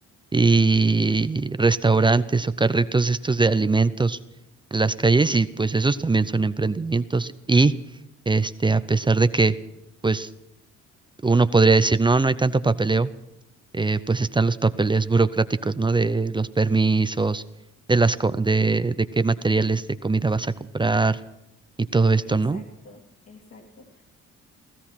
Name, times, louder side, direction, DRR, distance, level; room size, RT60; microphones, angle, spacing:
voice 1, 0.3-4.2 4.7-7.7 8.3-9.6 10.0-10.3 11.2-13.1 13.7-17.4 17.9-21.2 21.9-22.6, right 3 dB, 15° right, 14 dB, 0.5 m, -21 dB
voice 2, 22.2-24.0, left 3 dB, 50° left, 0 dB, 2.4 m, -47 dB
16.5 x 14.5 x 5.7 m, 0.88 s
cardioid pair, 90°, 30 cm